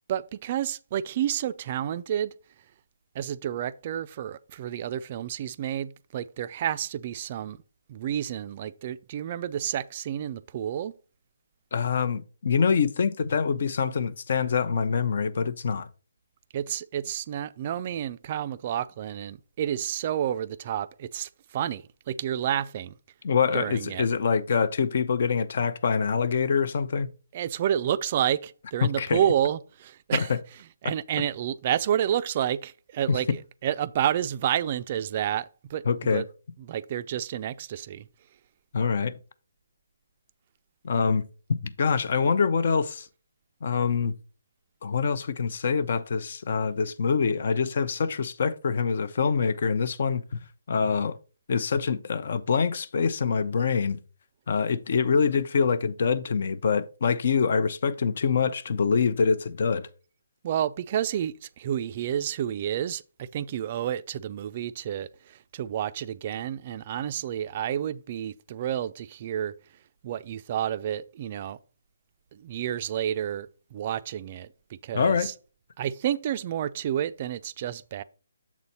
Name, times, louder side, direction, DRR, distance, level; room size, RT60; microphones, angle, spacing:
voice 1, 0.1-2.3 3.1-7.6 7.9-10.9 16.5-22.9 23.5-24.1 27.3-30.3 30.8-35.8 36.1-36.2 36.6-38.1 60.4-69.5 70.0-71.6 72.3-74.5 74.8-75.3 75.8-78.0, right 10 dB, 35° right, 0.4 m, -30 dB
voice 2, 11.7-15.9 23.2-27.1 28.8-29.2 30.1-30.4 30.8-30.9 33.1-33.2 35.9-36.2 38.7-39.1 40.8-41.2 41.5-43.1 43.6-44.1 44.8-50.4 50.7-51.2 51.5-54.0 54.5-59.9 74.9-75.3, left 5 dB, 55° left, 0.6 m, -25 dB
7.3 x 4.1 x 4.3 m
hypercardioid pair, 150°, 0 cm